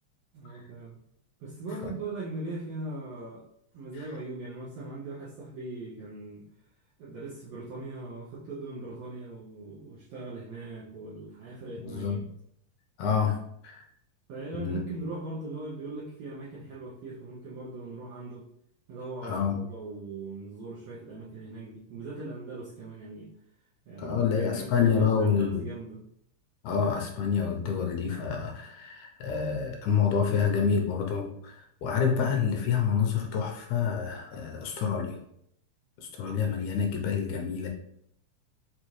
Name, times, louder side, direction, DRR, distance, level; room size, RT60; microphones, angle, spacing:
voice 1, 0.3-0.9 1.4-3.4 3.7-6.5 7.0-12.3 14.3-18.5 18.9-23.3 23.9-26.0, right 3 dB, 80° right, -6 dB, 1.4 m, -40 dB
voice 2, 11.8-12.2 13.0-13.4 13.6-13.9 14.5-14.8 19.2-19.6 24.0-25.7 26.6-35.2 36.0-37.7, left 7 dB, 80° left, 2 dB, 1.9 m, -28 dB
5.5 x 2.4 x 3.0 m, 0.70 s
omnidirectional pair, 3.6 m